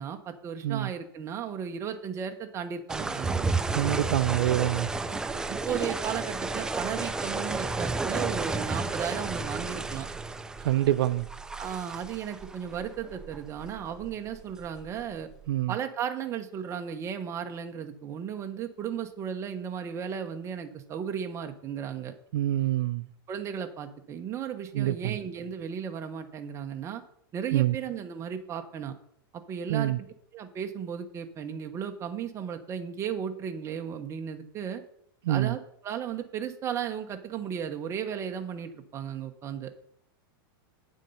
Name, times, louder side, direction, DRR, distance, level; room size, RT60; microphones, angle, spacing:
voice 1, 0.0-3.5 5.2-10.1 11.6-15.3 15.7-22.1 23.3-27.0 27.3-28.9 29.3-30.1 30.3-34.8 35.3-39.7, right 8 dB, 25° right, 1.0 m, -35 dB
sound 1, 2.9-15.5, right 3 dB, 5° right, 0.4 m, -32 dB
voice 2, 3.7-4.9 10.6-11.3 15.5-15.7 22.3-23.1 24.7-25.2 27.5-27.8 29.7-30.0 35.2-35.5, right 14 dB, 85° right, 0.5 m, -26 dB
9.1 x 7.4 x 5.5 m
supercardioid pair, 150°, 12 cm